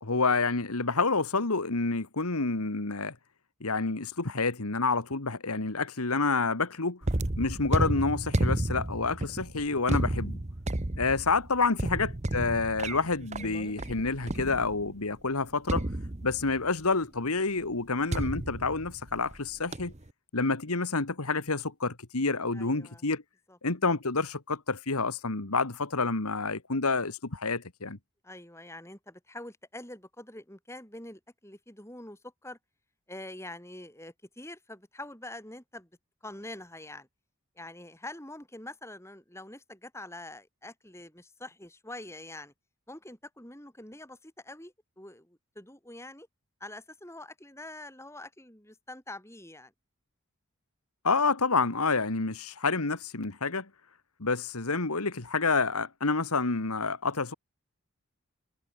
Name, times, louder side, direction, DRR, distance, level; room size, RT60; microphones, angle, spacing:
voice 1, 0.0-3.1 3.6-7.0 7.4-10.4 11.0-15.8 16.2-19.9 20.3-23.2 23.6-28.0 51.0-53.7 54.2-57.3, left 4 dB, 85° left, 1.9 m, -28 dB
sound 1, 7.0-15.0 15.7-16.7 18.1-19.4 19.7-20.1, right 1 dB, 30° right, 1.1 m, -32 dB
voice 2, 22.5-23.0 23.5-23.6 28.2-32.6 33.1-35.9 36.2-37.1 37.6-42.5 42.9-46.3 46.6-49.7, left 1 dB, 10° left, 5.3 m, -45 dB
head